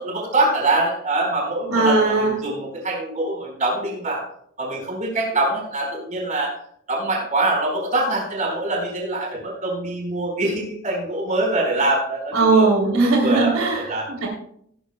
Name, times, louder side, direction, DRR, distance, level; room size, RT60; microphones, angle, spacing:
voice 1, 0.0-4.2 4.6-6.5 6.9-12.7 13.0-14.1, right 2 dB, 35° right, -1 dB, 4.4 m, -24 dB
voice 2, 1.7-2.3 12.3-13.8 14.2-14.3, right 3 dB, 85° right, -2 dB, 3.1 m, -18 dB
18.0 x 11.0 x 2.2 m, 0.67 s
head